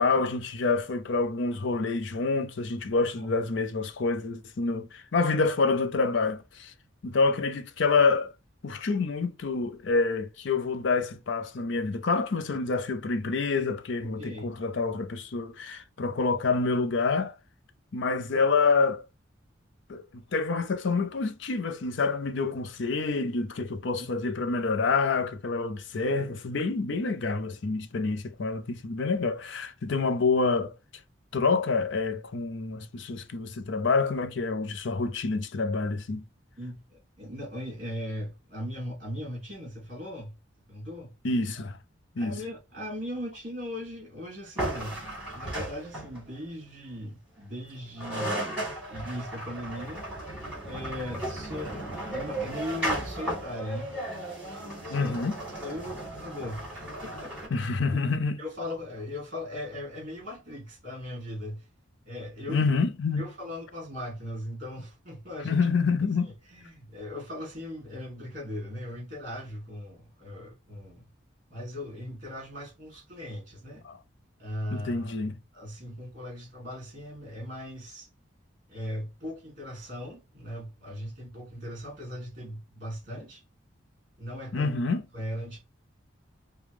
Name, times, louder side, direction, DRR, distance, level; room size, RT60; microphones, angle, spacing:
voice 1, 0.0-6.7 7.0-8.3 8.6-17.3 17.9-19.0 19.9-30.7 31.3-36.2 41.2-41.8 42.2-42.4 54.9-55.4 57.5-58.4 62.5-63.3 65.4-66.3 73.8-74.0 74.7-75.3 84.5-85.0, left 4 dB, 65° left, 0.5 m, -27 dB
voice 2, 14.0-14.6 24.0-24.1 36.6-40.4 40.7-41.2 42.2-45.1 45.3-50.1 50.6-53.9 54.8-55.2 55.6-57.7 58.4-61.7 62.1-62.6 63.2-65.6 66.2-71.1 71.5-73.8 74.4-75.2 75.5-78.1 78.7-83.4 84.2-84.7 85.1-85.6, left 1 dB, 40° right, 2.6 m, -38 dB
sound 1, 44.6-46.3 47.7-47.8 48.0-57.5, right 1 dB, 5° right, 2.3 m, -35 dB
5.0 x 2.2 x 3.4 m
head